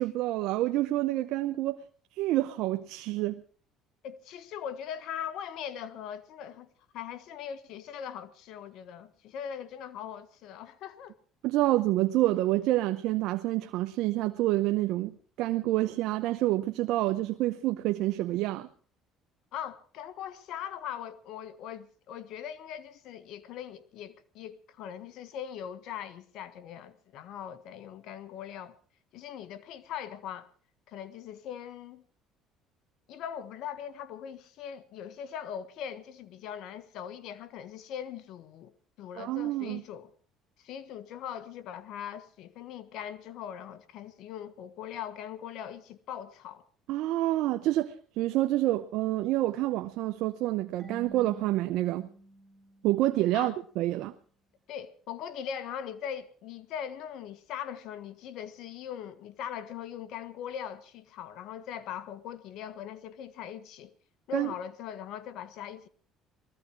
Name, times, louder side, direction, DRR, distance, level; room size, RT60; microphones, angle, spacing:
voice 1, 0.0-1.8 2.2-3.4 11.4-18.7 39.2-39.8 46.9-52.1 52.8-54.1 64.3-64.5, right 16 dB, 75° right, 0.8 m, -28 dB
voice 2, 4.0-6.7 6.9-11.1 19.5-28.7 29.1-30.5 30.9-32.0 33.1-38.7 39.0-40.1 40.6-46.6 53.3-53.6 54.7-63.9 64.3-65.9, left 9 dB, 70° left, 1.5 m, -40 dB
Marimba xylophone / Wood, 50.8-53.5, right 1 dB, 15° right, 6.8 m, -50 dB
20.5 x 15.0 x 4.6 m
supercardioid pair, 90°, 0 cm